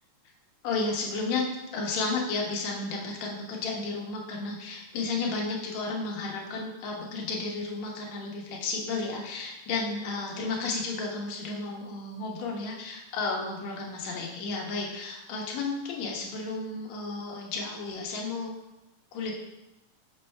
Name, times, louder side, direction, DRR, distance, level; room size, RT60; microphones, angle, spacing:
voice 1, 0.6-1.4 1.7-18.5 19.1-19.3, left 3 dB, 70° left, -1 dB, 2.2 m, -32 dB
6.7 x 5.5 x 3.3 m, 0.95 s
omnidirectional pair, 3.4 m